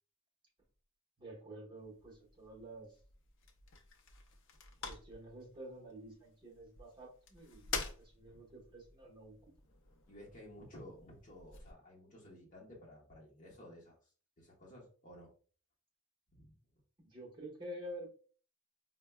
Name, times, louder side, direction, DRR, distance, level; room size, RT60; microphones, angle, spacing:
voice 1, 1.2-2.9 4.8-9.4 17.0-18.1, right 1 dB, 20° right, -4 dB, 1.0 m, -49 dB
sound 1, 1.8-11.7, left 5 dB, 60° left, 0.5 m, -49 dB
voice 2, 10.1-15.3 16.3-16.5, equal, 35° left, -3 dB, 0.9 m, -54 dB
4.4 x 2.2 x 2.2 m, 0.40 s
head